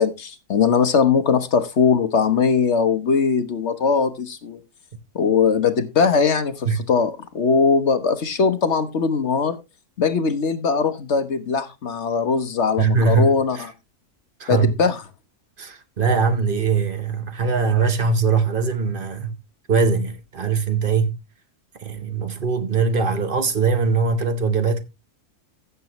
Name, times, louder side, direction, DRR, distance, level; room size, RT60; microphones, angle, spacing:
voice 1, 0.0-4.6 5.1-9.6 10.0-13.7 14.5-15.0, left 5 dB, 50° left, 1.2 m, -20 dB
voice 2, 12.8-13.6 14.4-14.7 15.6-19.4 19.7-21.2 21.8-24.8, right 5 dB, 40° right, 1.0 m, -21 dB
15.5 x 6.8 x 3.0 m
omnidirectional pair, 1.7 m